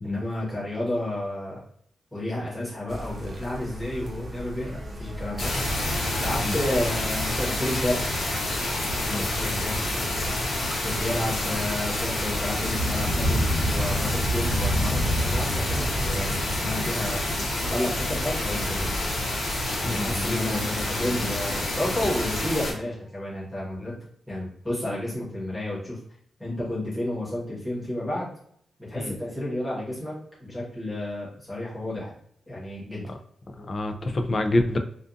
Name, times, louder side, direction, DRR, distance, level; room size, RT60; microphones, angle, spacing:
voice 1, 0.0-1.6 2.1-5.5 6.2-8.0 9.0-9.8 10.8-17.4 17.7-19.1 19.8-23.9 24.3-26.0 26.4-28.3 28.8-32.1 32.5-33.0, left 1 dB, 5° left, -8 dB, 1.1 m, -31 dB
sound 1, 2.9-22.7, equal, 30° right, 0.5 m, -38 dB
sound 2, 5.4-22.7, left 1 dB, 65° left, 1.0 m, -27 dB
voice 2, 9.1-9.5 19.8-20.9 28.9-29.1 33.6-34.8, left 1 dB, 30° left, 6 dB, 0.3 m, -28 dB
2.5 x 2.4 x 2.4 m, 0.65 s
wide cardioid pair, 155°, 0 cm